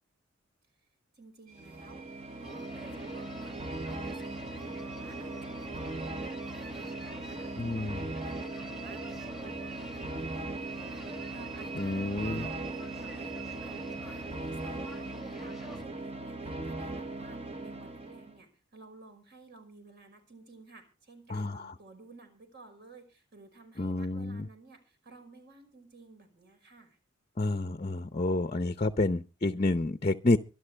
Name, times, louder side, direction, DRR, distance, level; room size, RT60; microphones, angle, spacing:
voice 1, 1.1-3.6 3.9-27.0, right 3 dB, 55° right, 5.2 m, -54 dB
sound 1, 1.5-18.4, right 2 dB, 30° right, 1.0 m, -39 dB
sound 2, 1.5-15.2, right 7 dB, 90° right, 1.7 m, -48 dB
sound 3, 2.4-15.9, left 1 dB, ahead, 1.4 m, -48 dB
voice 2, 7.6-8.0 11.8-12.5 21.3-21.7 23.8-24.5 27.4-30.4, left 2 dB, 35° left, 0.7 m, -29 dB
24.5 x 11.0 x 3.4 m
head